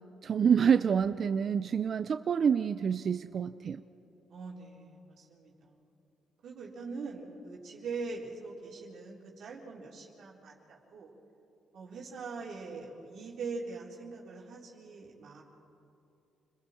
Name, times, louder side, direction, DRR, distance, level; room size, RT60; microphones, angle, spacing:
voice 1, 0.2-3.8, right 7 dB, 50° right, 11 dB, 0.5 m, -27 dB
voice 2, 4.3-5.8 6.4-11.1 11.7-15.4, right 4 dB, 65° right, -4 dB, 3.9 m, -42 dB
30.0 x 21.0 x 4.4 m, 2.7 s
cardioid pair, 90°, 0 cm